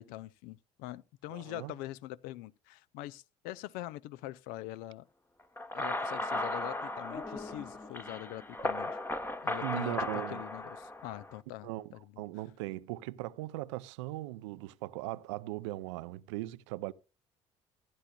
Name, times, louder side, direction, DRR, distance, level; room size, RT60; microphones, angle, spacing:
voice 1, 0.0-5.1 5.7-9.0 9.4-12.2, left 16 dB, 65° left, 0.5 m, -44 dB
voice 2, 1.3-1.7 9.6-10.4 11.6-11.9 12.2-16.9, right 18 dB, 75° right, 0.5 m, -39 dB
sound 1, 5.6-11.4, left 2 dB, 15° left, 1.0 m, -36 dB
15.0 x 10.0 x 2.3 m
hypercardioid pair, 55°, 16 cm